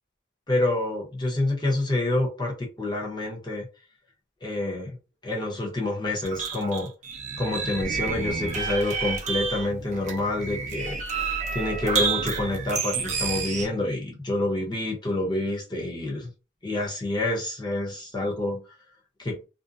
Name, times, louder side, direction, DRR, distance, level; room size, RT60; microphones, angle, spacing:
voice 1, 0.5-3.7 4.4-5.0 5.2-6.9 7.4-11.0 11.5-16.3 16.6-18.6 19.2-19.4, left 2 dB, 20° left, 0.8 m, -27 dB
sound 1, 6.2-13.7, right 5 dB, 35° right, 0.5 m, -30 dB
2.6 x 2.1 x 2.5 m
head